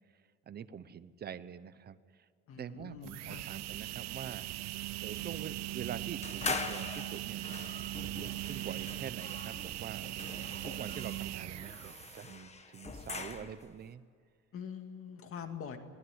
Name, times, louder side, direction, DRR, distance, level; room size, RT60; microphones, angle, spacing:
voice 1, 0.5-2.3 2.6-4.5 5.0-7.8 8.2-10.0 10.6-14.0, right 8 dB, 35° right, 14 dB, 0.8 m, -45 dB
voice 2, 2.5-3.4 14.5-15.8, left 7 dB, 50° left, 6 dB, 2.2 m, -44 dB
sound 1, 2.9-12.4, right 16 dB, 65° right, 0.6 m, -40 dB
sound 2, 6.2-13.7, left 4 dB, 20° left, 1.3 m, -42 dB
22.5 x 19.0 x 9.8 m, 2.1 s
cardioid pair, 170°, 29 cm